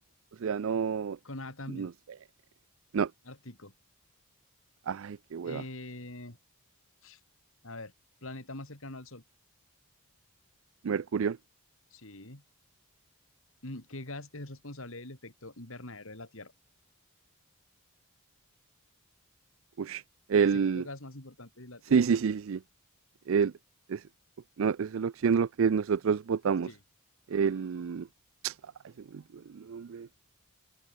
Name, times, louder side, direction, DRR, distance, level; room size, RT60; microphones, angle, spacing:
voice 1, 0.4-1.2 1.8-1.9 2.9-3.1 4.9-5.6 10.8-11.4 19.8-20.0 20.3-20.8 21.9-22.6 23.3-23.5 23.9-24.0 24.6-26.7 27.3-28.1 28.4-28.5 29.7-30.1, right 6 dB, 60° right, 0.4 m, -27 dB
voice 2, 1.2-1.9 3.2-3.7 5.4-6.4 7.0-7.2 7.6-7.9 8.2-9.2 11.9-12.4 13.6-16.5 20.4-21.9 26.6-26.8, left 2 dB, 65° left, 3.8 m, -43 dB
head